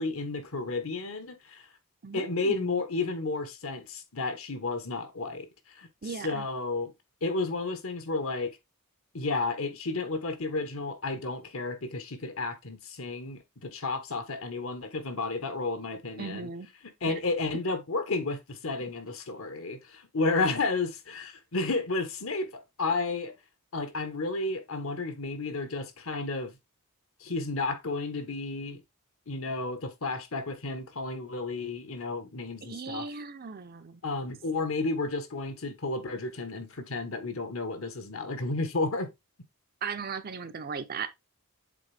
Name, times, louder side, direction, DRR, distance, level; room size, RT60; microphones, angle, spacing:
voice 1, 0.0-1.6 2.1-6.9 7.2-8.5 9.1-16.5 17.0-23.4 23.7-26.6 27.2-28.8 29.3-33.1 34.0-39.1, left 3 dB, 65° left, 1.3 m, -32 dB
voice 2, 2.0-2.8 6.0-6.4 16.2-16.7 17.0-17.2 32.6-34.0 39.8-41.1, right 5 dB, 40° right, 0.6 m, -37 dB
7.6 x 3.6 x 3.4 m
head